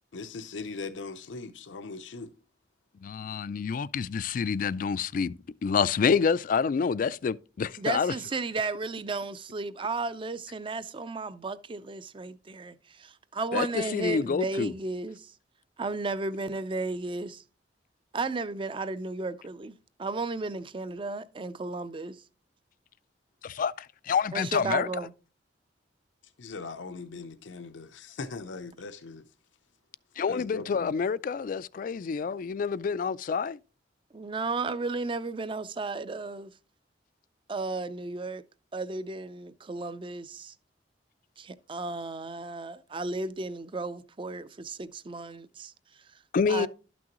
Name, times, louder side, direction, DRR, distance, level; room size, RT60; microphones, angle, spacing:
voice 1, 0.1-2.3 26.4-29.2 30.3-30.9, left 3 dB, 85° left, 0.7 m, -40 dB
voice 2, 3.0-5.3 5.6-8.1 13.5-14.7 23.4-24.9 30.2-33.6 46.3-46.7, left 6 dB, 45° left, 0.3 m, -28 dB
voice 3, 7.8-15.3 15.8-17.4 18.1-22.2 24.3-25.1 34.1-36.5 37.5-38.4 38.7-40.5 41.4-45.7 46.5-46.7, right 3 dB, 25° right, 0.5 m, -34 dB
12.0 x 6.1 x 3.0 m
head